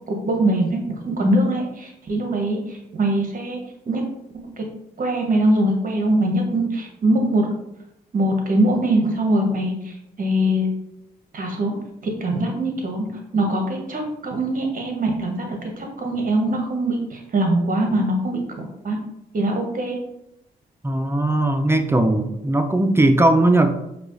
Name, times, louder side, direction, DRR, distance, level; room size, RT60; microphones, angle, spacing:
voice 1, 0.1-0.8 1.0-3.6 3.9-4.0 4.6-4.7 5.0-7.5 8.1-10.7 11.3-11.7 12.2-13.0 13.3-19.0 19.3-20.0, right 1 dB, 45° right, 2 dB, 1.0 m, -22 dB
voice 2, 20.8-23.7, right 1 dB, 10° right, 7 dB, 0.4 m, -18 dB
4.7 x 2.3 x 2.6 m, 0.84 s
hypercardioid pair, 50°, 20 cm